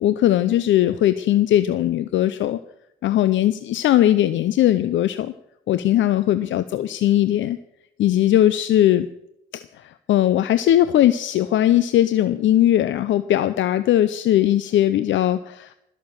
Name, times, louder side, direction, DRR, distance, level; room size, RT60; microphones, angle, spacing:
voice 1, 0.0-2.6 3.0-5.3 5.7-7.6 8.0-9.1 9.5-9.6 10.1-15.7, left 12 dB, 70° left, 12 dB, 0.6 m, -19 dB
20.0 x 6.8 x 7.5 m, 0.81 s
cardioid pair, 90°, 20 cm